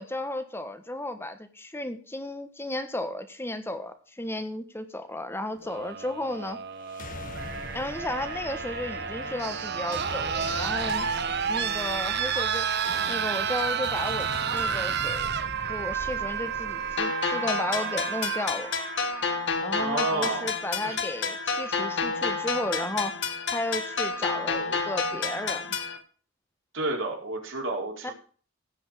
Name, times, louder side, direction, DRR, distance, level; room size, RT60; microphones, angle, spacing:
voice 1, 0.0-6.6 7.7-11.1 11.5-12.8 13.1-15.3 15.7-18.7 19.6-23.2 23.5-25.8 28.0-28.1, left 1 dB, 10° left, 1.3 m, -34 dB
sound 1, 5.6-19.6 20.8-20.9, right 7 dB, 60° right, 1.0 m, -31 dB
sound 2, 6.8-17.0, left 2 dB, 45° left, 1.1 m, -41 dB
sound 3, 17.0-26.0, left 4 dB, 65° left, 1.8 m, -30 dB
voice 2, 19.8-20.5 20.8-21.0 26.7-28.1, right 2 dB, 80° right, 3.9 m, -30 dB
16.0 x 5.6 x 6.4 m
head